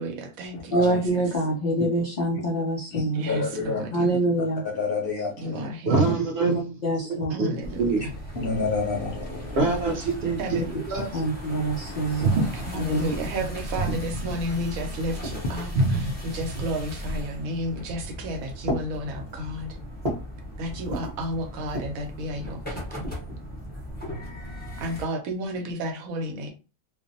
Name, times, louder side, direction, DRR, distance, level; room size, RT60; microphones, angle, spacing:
voice 1, 0.0-1.3 3.1-4.1 5.4-6.0 7.3-8.1 10.4-10.7 12.5-19.8 20.6-23.1 24.8-26.5, equal, 90° right, 1.1 m, -32 dB
voice 2, 0.7-3.5 3.9-4.6 6.0-6.1 6.5-7.5 11.1-12.4 12.9-13.1, right 1 dB, 90° left, 0.4 m, -26 dB
voice 3, 2.9-3.9 4.7-5.7 8.3-9.6, left 4 dB, 55° left, 0.7 m, -28 dB
voice 4, 5.9-6.8 7.1-8.0 9.5-11.1 12.1-12.7 13.8-14.0 15.7-16.1, right 3 dB, 60° right, 0.7 m, -25 dB
sound 1, 7.6-25.0, equal, 10° left, 0.6 m, -37 dB
sound 2, 15.2-15.7 16.5-17.0 17.8-18.2 18.6-20.4 20.7-21.2 21.6-22.1 22.8-23.8, equal, 35° right, 0.8 m, -36 dB
2.5 x 2.0 x 2.6 m
omnidirectional pair, 1.4 m